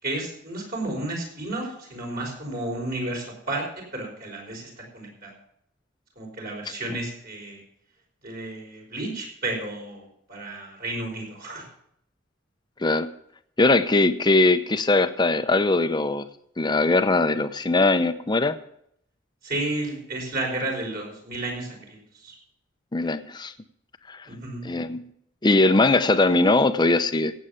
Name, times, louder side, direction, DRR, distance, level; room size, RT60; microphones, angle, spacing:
voice 1, 0.0-3.6 3.9-5.3 6.2-7.6 8.2-11.6 19.4-22.4 24.2-24.7, right 2 dB, 50° right, 0 dB, 5.3 m, -32 dB
voice 2, 13.6-16.3 16.6-18.6 22.9-23.5 24.1-24.3 24.6-25.0 25.4-27.3, left 2 dB, 25° left, 11 dB, 0.7 m, -21 dB
16.5 x 8.1 x 5.8 m, 0.71 s
head